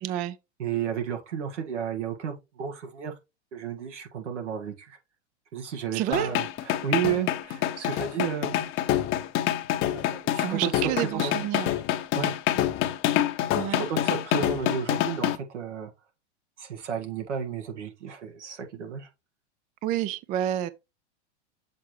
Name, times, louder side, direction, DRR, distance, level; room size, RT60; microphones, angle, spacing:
voice 1, 0.0-0.4 5.9-6.3 10.4-11.7 13.5-13.9 19.8-20.7, right 12 dB, 25° right, 0.4 m, -29 dB
voice 2, 0.6-3.1 3.5-5.0 5.5-8.7 9.8-11.5 12.2-12.4 13.8-15.9 16.6-19.1, right 8 dB, 80° right, 1.9 m, -32 dB
sound 1, 6.1-15.4, left 12 dB, 35° left, 0.7 m, -26 dB
7.4 x 4.5 x 3.2 m
hypercardioid pair, 110°, 35 cm